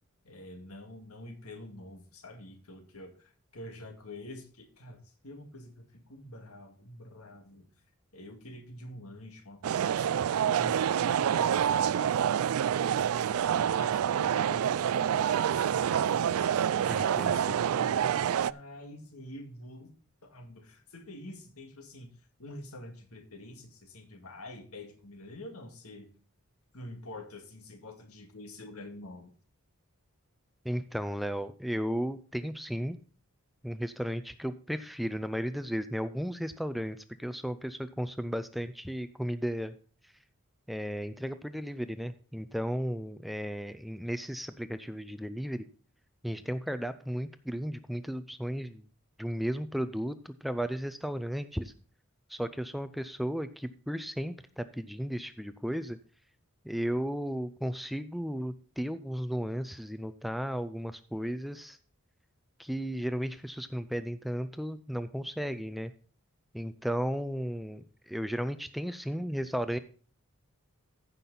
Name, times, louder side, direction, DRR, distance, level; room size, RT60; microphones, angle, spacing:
voice 1, 0.2-7.7 8.1-12.8 13.2-15.8 16.3-20.0 20.2-22.1 22.4-26.1 26.7-29.3, left 1 dB, 85° left, 5 dB, 2.1 m, -47 dB
sound 1, 9.6-18.5, right 9 dB, 80° right, 0.3 m, -27 dB
voice 2, 16.9-17.4 30.6-33.0 33.6-39.7 40.7-45.6 46.2-48.8 49.2-51.7 52.3-56.0 56.6-61.8 62.6-65.9 66.5-69.8, equal, ahead, 12 dB, 0.4 m, -34 dB
15.0 x 5.9 x 4.0 m, 0.42 s
head